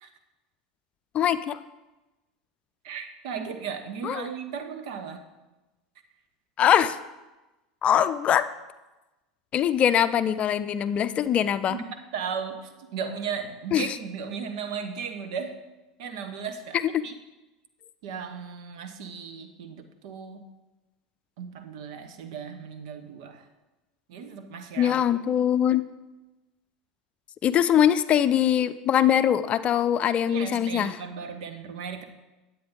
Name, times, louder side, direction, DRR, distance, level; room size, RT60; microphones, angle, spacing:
voice 1, 1.1-1.6 4.0-4.3 6.6-7.0 7.8-8.5 9.5-11.8 13.7-13.8 16.9-17.0 24.8-25.8 27.4-31.0, left 9 dB, 40° left, 13 dB, 0.5 m, -22 dB
voice 2, 2.8-5.3 11.7-15.6 16.0-16.8 17.0-17.2 18.0-20.4 21.4-23.5 24.1-25.0 30.3-32.0, right 6 dB, 70° right, 7 dB, 1.1 m, -36 dB
9.5 x 8.5 x 3.8 m, 1.1 s
hypercardioid pair, 90°, 3 cm